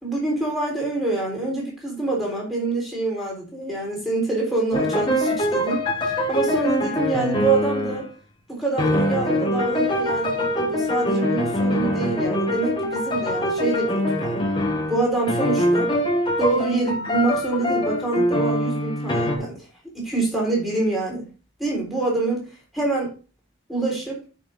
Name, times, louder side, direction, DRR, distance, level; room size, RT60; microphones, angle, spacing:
voice 1, 0.0-8.0 8.5-14.4 14.9-15.9 16.4-19.6 19.9-21.3 21.6-22.5 22.7-23.1 23.7-24.2, right 3 dB, ahead, -4 dB, 3.8 m, -26 dB
sound 1, 4.7-8.1 8.8-15.0 15.3-19.4, left 1 dB, 25° left, 1.4 m, -23 dB
13.0 x 5.6 x 2.6 m, 0.34 s
head